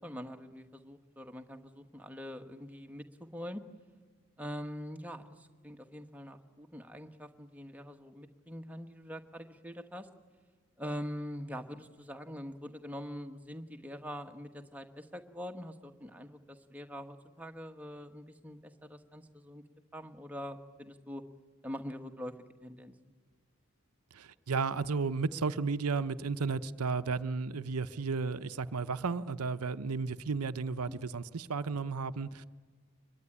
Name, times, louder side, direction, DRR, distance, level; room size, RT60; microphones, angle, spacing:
voice 1, 0.0-3.6 4.4-10.1 10.8-19.6 19.9-21.2 21.6-22.3 22.6-22.9 30.8-31.1, equal, 5° right, 5 dB, 1.3 m, -44 dB
voice 2, 24.1-32.5, right 4 dB, 90° right, 13 dB, 0.8 m, -33 dB
24.0 x 22.0 x 9.9 m, 1.4 s
head